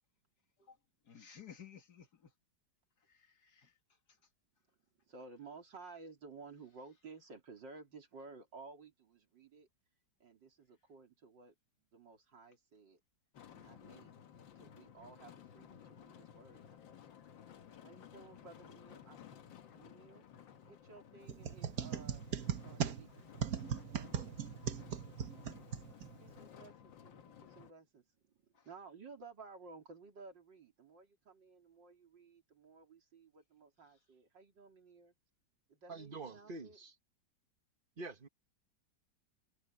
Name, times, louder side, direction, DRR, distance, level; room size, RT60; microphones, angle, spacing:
voice 1, 1.0-2.3 3.0-3.7 25.3-26.1 28.5-28.7, left 8 dB, 60° left, 2.6 m, -57 dB
voice 2, 5.1-9.7 10.2-11.5 11.9-13.0 13.5-14.1 14.6-16.8 17.8-19.2 19.8-20.3 20.6-22.2 22.6-23.3 26.2-35.1 35.7-36.8, right 4 dB, 75° right, 3.9 m, -55 dB
sound 1, 13.3-27.7, left 9 dB, 85° left, 1.9 m, -56 dB
sound 2, 21.3-26.4, right 8 dB, 55° right, 1.5 m, -39 dB
voice 3, 35.9-36.9 38.0-38.3, right 3 dB, 35° right, 1.2 m, -46 dB
omnidirectional pair, 2.0 m